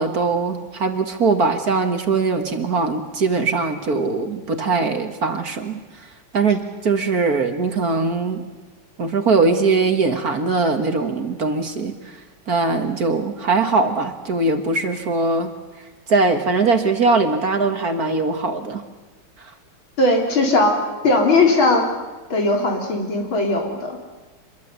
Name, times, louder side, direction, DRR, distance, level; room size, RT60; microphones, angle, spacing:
voice 1, 0.0-5.8 6.3-8.4 9.0-11.9 12.5-15.5 16.1-18.8 19.4-19.5, right 3 dB, 45° right, 6 dB, 1.9 m, -21 dB
voice 2, 20.0-20.7 21.0-21.8 22.3-24.0, left 2 dB, 70° left, 2 dB, 4.6 m, -18 dB
26.0 x 22.5 x 8.3 m, 1.2 s
omnidirectional pair, 2.3 m